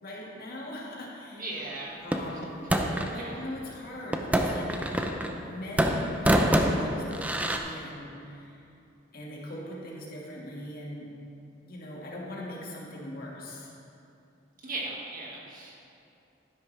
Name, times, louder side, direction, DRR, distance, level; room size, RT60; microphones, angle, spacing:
voice 1, 0.0-1.5 2.0-2.6 3.1-8.6 9.1-11.1 11.6-13.7, left 1 dB, 50° left, -4 dB, 1.9 m, -41 dB
voice 2, 1.3-2.0 3.2-3.4 14.6-15.8, right 2 dB, 45° right, -3 dB, 1.8 m, -37 dB
sound 1, 2.1-3.2 4.1-5.5 5.8-7.6, equal, 10° right, 0.5 m, -26 dB
11.5 x 10.5 x 3.3 m, 2.7 s
head